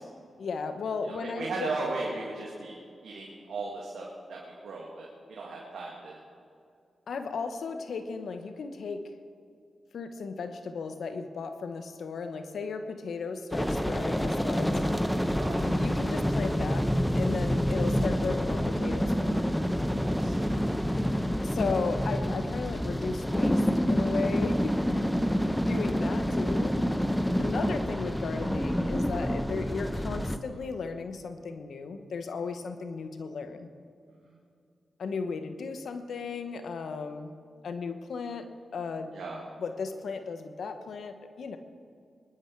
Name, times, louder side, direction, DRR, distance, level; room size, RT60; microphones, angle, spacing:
voice 1, 0.4-1.7 7.1-9.1 9.9-14.8 15.6-19.5 21.4-25.0 25.7-26.8 27.4-33.7 35.0-37.4 37.6-39.1 39.6-41.6, left 4 dB, 75° left, 8 dB, 1.1 m, -35 dB
voice 2, 1.1-2.8 3.0-6.2 15.4-15.7 20.0-20.6 20.9-21.0 34.2-34.4 39.1-39.4, right 3 dB, 80° right, -3 dB, 2.3 m, -37 dB
sound 1, 13.5-30.4, equal, 5° left, 1.0 m, -28 dB
22.5 x 11.5 x 4.7 m, 2.4 s
supercardioid pair, 45°, 0 cm